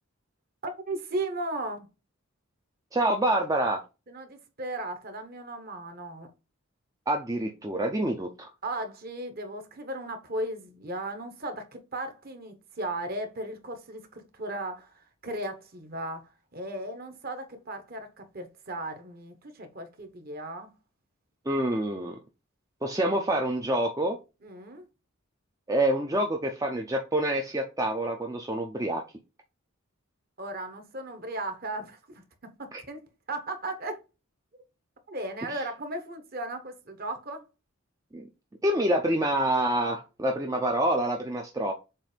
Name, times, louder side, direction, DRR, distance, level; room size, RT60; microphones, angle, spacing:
voice 1, 0.6-1.9 4.1-6.3 8.6-20.7 24.4-24.8 30.4-33.0 33.3-34.0 34.5-34.6 35.1-37.4, right 1 dB, 45° right, 1.2 m, -36 dB
voice 2, 2.9-3.8 7.1-8.5 21.5-22.2 22.8-24.2 25.7-29.0 32.7-32.8 35.5-35.6 38.1-38.2 38.6-41.7, right 1 dB, 15° right, 0.5 m, -27 dB
7.4 x 2.7 x 5.1 m
head